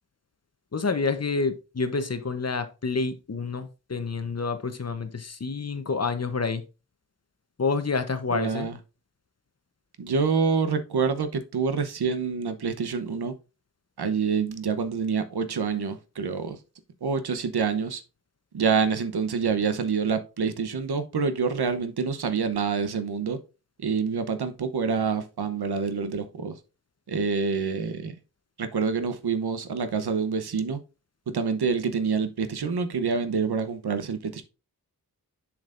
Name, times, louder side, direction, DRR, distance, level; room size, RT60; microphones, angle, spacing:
voice 1, 0.7-6.6 7.6-8.7, left 4 dB, 40° left, 0.9 m, -28 dB
voice 2, 8.3-8.8 10.0-13.3 14.0-16.6 17.0-18.0 18.5-23.4 23.8-26.5 27.1-28.1 28.6-30.8 31.3-34.4, right 5 dB, 85° right, 0.9 m, -27 dB
7.5 x 6.0 x 2.5 m
wide cardioid pair, 60°, 38 cm